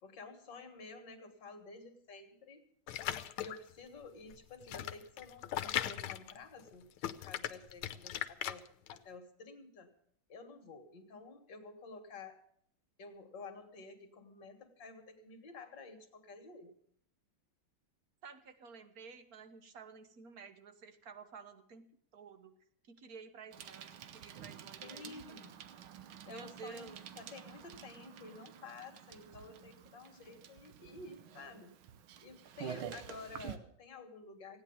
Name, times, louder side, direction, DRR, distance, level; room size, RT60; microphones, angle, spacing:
voice 1, 0.0-2.6 3.4-9.9 10.3-12.4 13.0-16.7 24.8-25.6 26.3-31.8 32.2-34.6, left 3 dB, 60° left, 6 dB, 2.5 m, -51 dB
sound 1, 2.9-3.7 4.3-6.7 7.0-9.0, left 11 dB, 80° left, 1.6 m, -38 dB
voice 2, 18.2-21.9 22.1-22.5 22.9-25.4 26.3-27.1, right 5 dB, 50° right, 9 dB, 1.4 m, -52 dB
Bicycle, 23.5-33.6, right 8 dB, 75° right, 1.7 m, -49 dB
16.5 x 9.7 x 7.2 m, 0.66 s
omnidirectional pair, 2.3 m